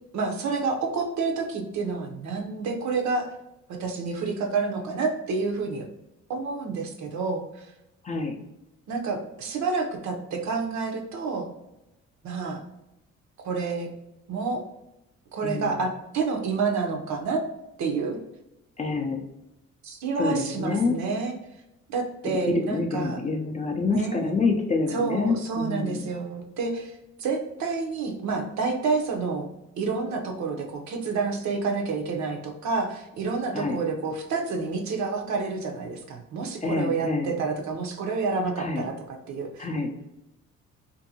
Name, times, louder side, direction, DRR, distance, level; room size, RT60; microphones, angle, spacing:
voice 1, 0.1-3.3 3.7-5.8 6.3-7.7 8.9-11.5 12.2-12.6 13.4-13.9 14.3-14.6 15.3-17.4 17.8-18.2 19.8-21.3 21.9-23.2 23.9-24.3 24.9-29.5 29.8-39.7, right 4 dB, 70° right, 3 dB, 0.6 m, -29 dB
voice 2, 8.0-8.3 15.4-15.7 18.8-19.2 20.2-21.0 22.5-26.0 33.5-33.8 36.6-37.3 38.6-38.9 39.6-39.9, left 3 dB, 25° left, 2 dB, 0.4 m, -27 dB
2.6 x 2.6 x 2.6 m, 0.91 s
cardioid pair, 90°, 30 cm